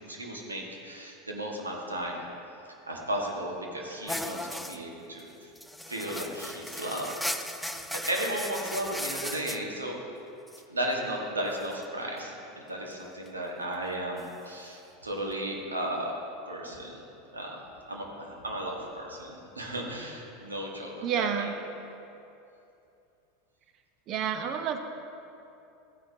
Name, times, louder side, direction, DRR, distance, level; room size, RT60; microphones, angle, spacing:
voice 1, 0.0-2.3 2.9-5.5 5.9-7.1 7.7-10.0 10.7-16.1 16.5-17.0 17.3-17.6 17.9-21.5, right 1 dB, 90° right, -1 dB, 1.5 m, -35 dB
sound 1, 4.1-4.8 5.2-5.3 5.6-9.6 10.5-10.6 11.7-11.8 14.2-14.3, left 1 dB, ahead, 0.5 m, -36 dB
voice 2, 21.0-21.5 24.1-24.8, right 8 dB, 45° right, 7 dB, 0.8 m, -29 dB
14.5 x 9.4 x 2.8 m, 2.8 s
hypercardioid pair, 85°, 0 cm